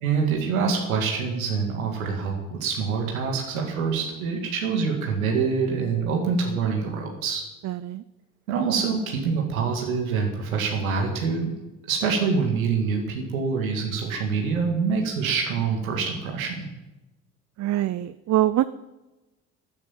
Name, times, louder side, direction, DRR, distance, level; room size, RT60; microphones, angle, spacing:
voice 1, 0.0-7.4 8.5-11.5 11.9-16.7, right 5 dB, 85° right, 1 dB, 2.3 m, -25 dB
voice 2, 7.6-8.0 17.6-18.6, right 14 dB, 45° right, 15 dB, 0.6 m, -24 dB
11.5 x 10.5 x 7.4 m, 1.0 s
hypercardioid pair, 60°, 41 cm